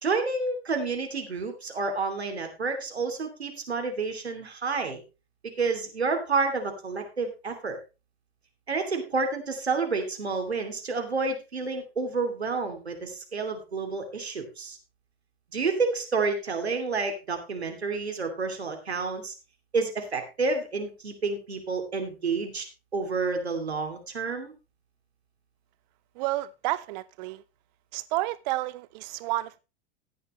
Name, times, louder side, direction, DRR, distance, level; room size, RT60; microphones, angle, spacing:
voice 1, 0.0-5.0 5.4-7.8 8.7-14.8 15.5-19.3 19.7-22.6 22.9-24.5, right 4 dB, 85° right, 2.8 m, -29 dB
voice 2, 26.2-27.4 27.9-29.6, right 17 dB, 45° right, 0.5 m, -30 dB
14.0 x 9.7 x 3.2 m
figure-of-eight pair, 95°, 31 cm